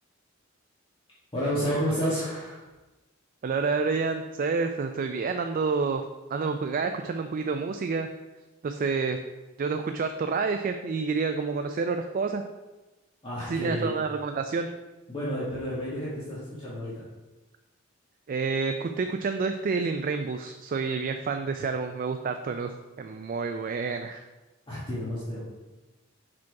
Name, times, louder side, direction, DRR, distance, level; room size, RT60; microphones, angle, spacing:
voice 1, 1.3-2.7 13.2-14.0 15.1-17.0 24.7-25.4, equal, 25° left, -9 dB, 1.6 m, -30 dB
voice 2, 3.4-6.0 6.3-8.1 8.6-9.2 9.6-12.4 13.5-14.7 18.3-24.2, right 4 dB, 45° right, 6 dB, 0.4 m, -29 dB
5.9 x 5.0 x 4.7 m, 1.1 s
head